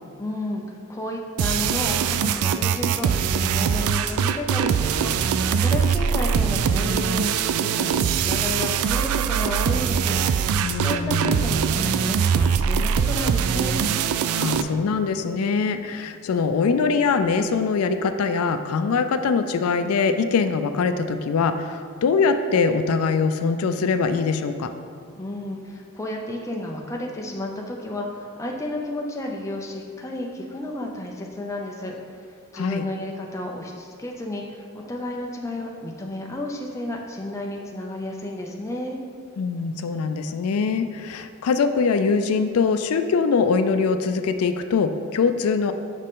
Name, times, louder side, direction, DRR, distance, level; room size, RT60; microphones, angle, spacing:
voice 1, 0.2-7.2 7.6-10.2 10.8-13.8 25.2-32.0 32.5-39.0, left 1 dB, 15° left, 0 dB, 0.5 m, -32 dB
sound 1, 1.4-14.6, right 7 dB, 90° right, 0.3 m, -22 dB
voice 2, 10.6-11.3 14.3-24.7 32.5-32.8 39.4-45.7, left 5 dB, 85° left, 9 dB, 0.4 m, -23 dB
6.5 x 5.1 x 3.7 m, 2.2 s
head